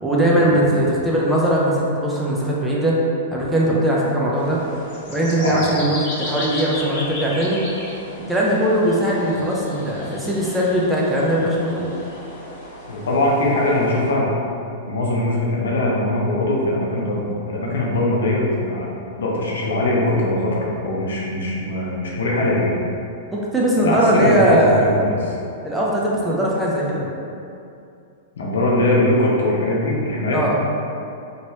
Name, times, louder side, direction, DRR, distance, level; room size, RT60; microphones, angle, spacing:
voice 1, 0.0-3.0 3.3-4.6 5.1-7.6 8.3-11.9 23.3-24.9 25.6-27.1 30.3-30.6, right 1 dB, 5° right, -5 dB, 0.6 m, -20 dB
sound 1, 4.3-14.1, left 1 dB, 50° left, 1.2 m, -35 dB
voice 2, 12.9-14.3 14.8-18.9 19.2-22.8 23.8-25.4 28.4-30.4, left 1 dB, 85° left, -4 dB, 0.7 m, -21 dB
3.0 x 2.9 x 2.8 m, 2.6 s
hypercardioid pair, 130°, 0 cm